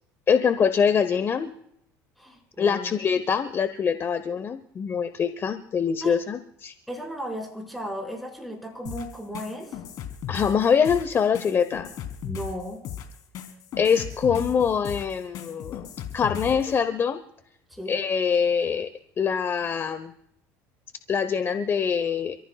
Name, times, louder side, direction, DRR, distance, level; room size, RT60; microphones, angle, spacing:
voice 1, 0.3-1.5 2.6-6.7 10.3-11.9 13.8-15.9 16.1-17.2 17.9-18.9 19.2-20.1 21.1-22.4, left 6 dB, 35° left, 11 dB, 0.9 m, -24 dB
voice 2, 2.2-2.9 6.0-6.2 6.9-9.8 12.2-12.8 17.7-17.9, equal, ahead, 1 dB, 5.1 m, -35 dB
sound 1, 8.9-16.7, left 9 dB, 60° left, 3.3 m, -36 dB
29.0 x 14.5 x 2.3 m, 0.74 s
supercardioid pair, 105°, 7 cm